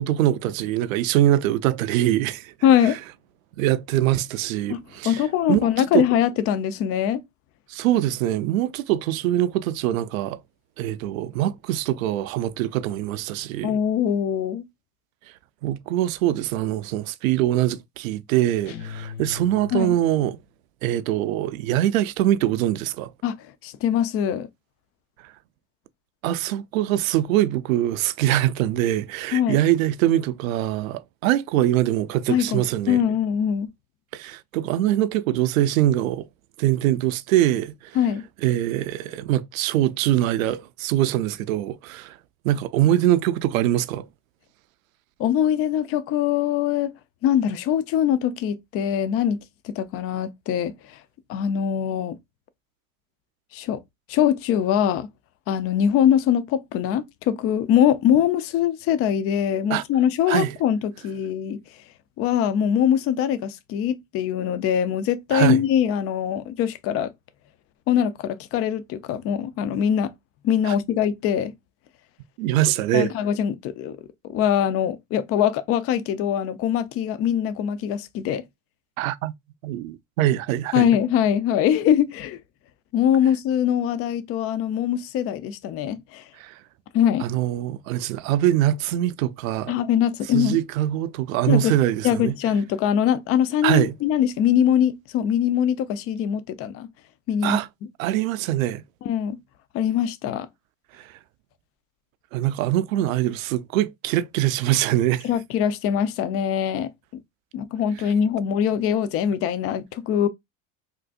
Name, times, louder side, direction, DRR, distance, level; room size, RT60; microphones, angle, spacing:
voice 1, 0.0-2.5 2.8-2.9 3.6-6.1 7.7-10.4 10.8-13.7 15.6-20.4 20.8-23.1 26.2-33.0 34.1-36.3 36.6-38.0 38.4-42.2 42.4-44.1 59.7-59.8 60.3-60.6 65.3-65.7 70.6-70.8 72.4-73.1 79.0-79.3 79.6-80.9 86.4-86.6 87.2-89.7 90.3-92.4 93.6-94.0 97.4-97.7 98.0-98.8 101.0-101.1 102.3-105.3, right 13 dB, 85° right, 0.5 m, -23 dB
voice 2, 2.6-3.0 4.7-4.8 5.0-7.2 13.6-14.7 19.7-20.0 23.2-23.4 23.6-24.5 29.3-29.6 32.3-33.7 38.0-38.2 45.2-46.9 47.2-51.0 51.3-52.2 53.5-53.8 54.1-55.1 55.5-61.6 62.2-67.1 67.9-70.1 70.4-71.5 72.9-74.0 74.3-78.4 80.7-82.4 82.9-86.2 86.9-87.3 89.7-90.6 91.5-91.7 92.0-96.9 97.3-97.6 99.0-99.4 99.7-100.5 105.2-106.9 107.5-110.3, left 9 dB, 35° left, 0.4 m, -22 dB
sound 1, 18.7-20.4, left 7 dB, 65° left, 0.8 m, -38 dB
3.7 x 2.6 x 2.3 m
supercardioid pair, 115°, 39 cm